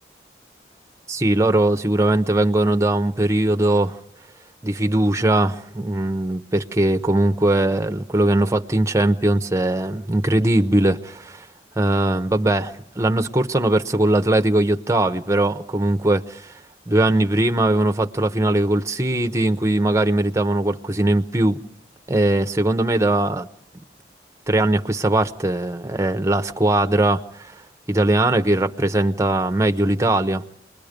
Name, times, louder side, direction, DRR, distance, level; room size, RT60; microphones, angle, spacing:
voice 1, 1.1-4.0 4.6-11.4 11.8-16.5 16.9-21.6 22.1-23.5 24.5-27.5 27.9-30.4, right 1 dB, 15° right, 0.8 m, -20 dB
28.0 x 21.5 x 5.1 m
head